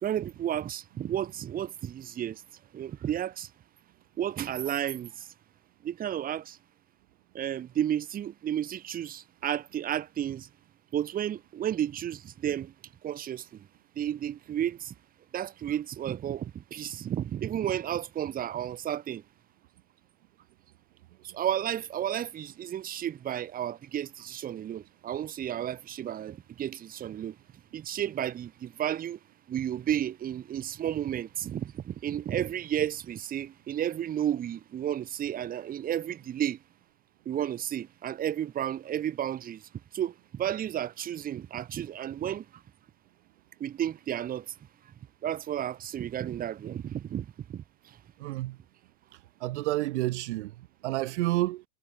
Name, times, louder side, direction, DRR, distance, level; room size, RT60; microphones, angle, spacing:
voice 1, 0.0-2.4 2.7-3.5 4.2-5.3 5.8-6.6 7.3-10.5 10.9-12.7 13.0-13.7 14.0-14.9 15.3-19.2 21.2-27.4 27.7-29.2 29.5-36.6 37.3-42.6 43.6-44.5 45.2-48.0, right 10 dB, 25° right, 0.7 m, -32 dB
voice 2, 48.2-48.6 49.4-51.6, right 17 dB, 90° right, 0.6 m, -30 dB
supercardioid pair, 110°, 34 cm